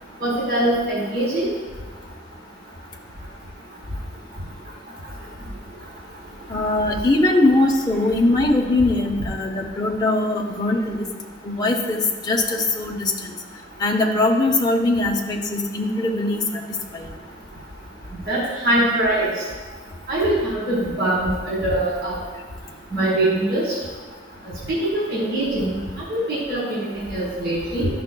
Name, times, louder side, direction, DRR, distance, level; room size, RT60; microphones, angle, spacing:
voice 1, 0.2-1.5 18.3-19.3 20.1-22.2 22.9-23.6 24.7-25.8 26.1-27.9, right 1 dB, 75° right, -6 dB, 1.6 m, -22 dB
voice 2, 6.5-11.1 11.4-13.1 13.8-16.6 16.9-17.1, left 2 dB, 20° left, 1 dB, 0.6 m, -21 dB
11.0 x 5.8 x 2.2 m, 1.4 s
head